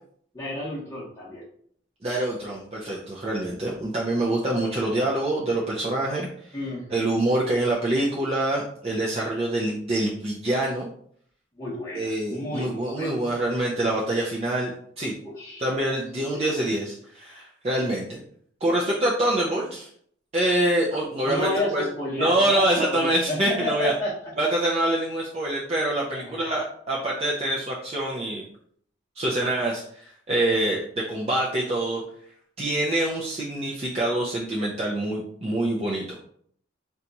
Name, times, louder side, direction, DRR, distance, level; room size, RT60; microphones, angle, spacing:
voice 1, 0.3-1.4 6.5-7.1 11.6-13.2 15.2-15.6 16.3-16.5 21.2-24.1 26.1-26.4, left 2 dB, 15° left, -10 dB, 0.8 m, -31 dB
voice 2, 2.0-6.6 6.9-10.9 11.9-15.1 15.6-18.2 18.6-19.9 20.3-21.8 22.2-23.9 24.4-28.4 29.2-32.0 32.6-36.2, right 1 dB, 30° right, -4 dB, 0.4 m, -25 dB
2.8 x 2.3 x 3.9 m, 0.63 s
head